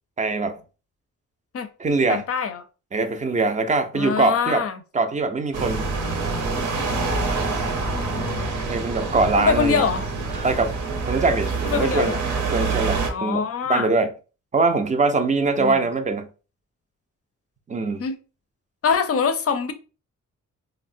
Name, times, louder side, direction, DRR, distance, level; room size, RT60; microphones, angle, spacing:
voice 1, 0.2-0.6 1.8-2.2 2.9-4.7 4.9-5.9 8.7-9.8 10.4-10.7 11.1-12.2 12.5-14.1 14.5-16.3 17.7-18.0, right 3 dB, 25° right, 0.4 m, -22 dB
voice 2, 2.1-2.6 3.9-4.8 7.9-8.5 9.4-10.0 11.7-12.2 13.1-13.9 15.6-15.8 18.0-18.2 18.8-19.7, left 6 dB, 50° left, 0.5 m, -24 dB
sound 1, 5.5-13.1, right 3 dB, 70° right, 0.7 m, -26 dB
3.5 x 2.0 x 2.5 m
cardioid pair, 90°, 31 cm